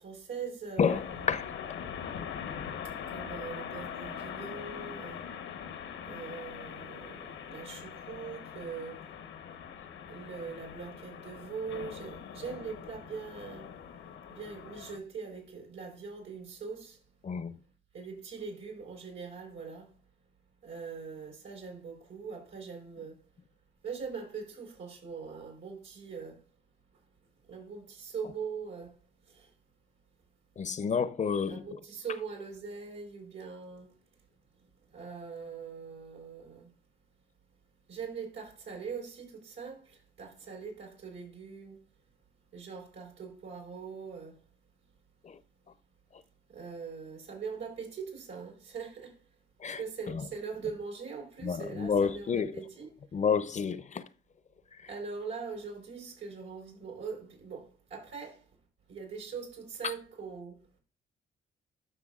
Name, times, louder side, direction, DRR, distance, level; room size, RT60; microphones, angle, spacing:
voice 1, 0.0-1.3 3.1-5.3 6.0-9.1 10.1-13.7 14.3-17.0 17.9-19.9 20.6-23.2 23.8-26.4 27.5-29.0 29.3-29.5 31.5-33.9 34.9-36.7 37.9-41.8 42.5-44.4 46.5-49.2 49.8-52.9 54.9-58.5 58.9-60.6, right 5 dB, 85° right, 4.2 m, -42 dB
sound 1, 0.9-15.0, left 8 dB, 85° left, 1.0 m, -42 dB
voice 2, 17.2-17.6 30.6-31.6 45.2-45.4 49.6-49.8 51.4-52.5 53.1-54.0, left 6 dB, 35° left, 0.6 m, -29 dB
12.0 x 6.1 x 2.4 m
cardioid pair, 90°, 20 cm